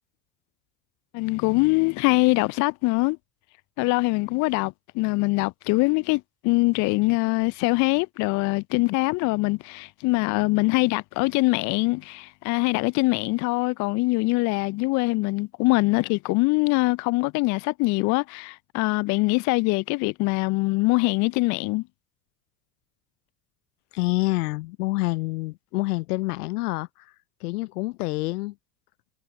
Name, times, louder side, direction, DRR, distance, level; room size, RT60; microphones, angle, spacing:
voice 1, 1.1-3.2 3.8-21.8, left 25 dB, 40° left, 0.4 m, -23 dB
voice 2, 23.9-27.1 27.4-28.5, left 22 dB, 65° left, 0.8 m, -27 dB
figure-of-eight pair, 70°, 49 cm